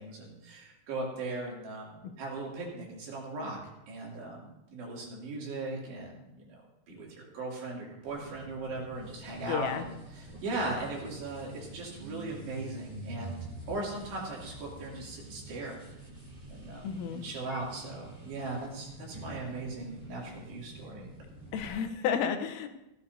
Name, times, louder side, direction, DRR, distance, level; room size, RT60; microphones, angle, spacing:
voice 1, 0.0-3.6 3.9-6.6 6.9-15.8 16.5-21.1, right 2 dB, 60° right, -4 dB, 4.7 m, -38 dB
sound 1, 8.1-21.7, right 1 dB, 10° right, 2.5 m, -47 dB
voice 2, 9.5-9.9 16.8-17.2 21.5-22.7, left 7 dB, 85° left, 8 dB, 3.5 m, -31 dB
17.0 x 14.5 x 2.8 m, 0.94 s
omnidirectional pair, 5.7 m